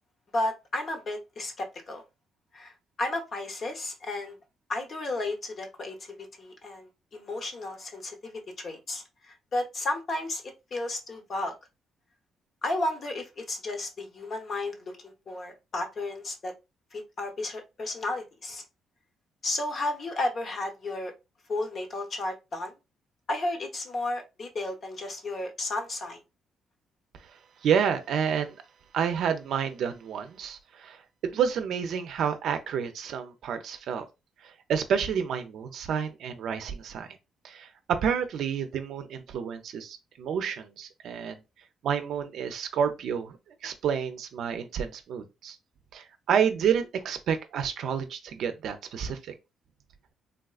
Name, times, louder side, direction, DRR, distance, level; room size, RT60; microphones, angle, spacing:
voice 1, 0.3-2.0 2.5-4.3 4.7-10.4 10.7-11.5 12.6-16.5 16.9-18.6 19.4-21.1 21.5-22.7 23.3-26.2, left 2 dB, 50° left, 0.8 m, -33 dB
voice 2, 27.6-28.6 28.9-34.1 34.4-37.2 37.4-41.4 41.8-43.4 43.6-45.6 45.9-49.2, right 7 dB, 75° right, 0.5 m, -29 dB
3.5 x 2.3 x 2.3 m
cardioid pair, 90°, 0 cm